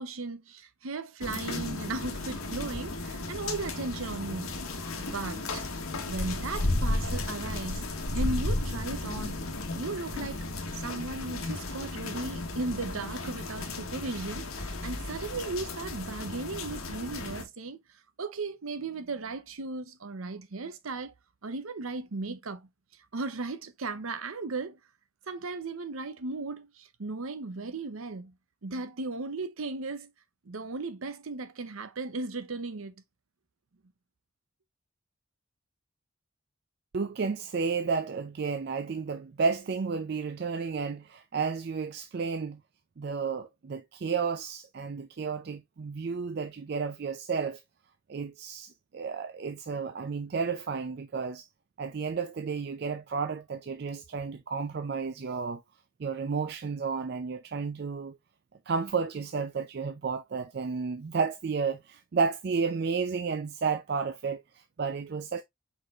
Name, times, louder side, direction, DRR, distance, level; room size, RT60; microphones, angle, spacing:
voice 1, 0.0-4.6 5.0-5.6 6.1-7.9 8.1-9.4 9.8-10.4 10.7-17.8 18.2-21.1 21.4-22.7 23.1-24.8 25.3-28.3 28.6-30.1 30.5-32.9, right 3 dB, 80° right, 0.8 m, -36 dB
sound 1, 1.2-17.4, left 2 dB, 85° left, 1.2 m, -34 dB
voice 2, 36.9-42.6 43.0-47.6 48.1-51.5 51.8-55.6 56.0-58.2 58.7-65.4, right 5 dB, 50° right, 0.4 m, -32 dB
4.8 x 4.1 x 2.4 m
head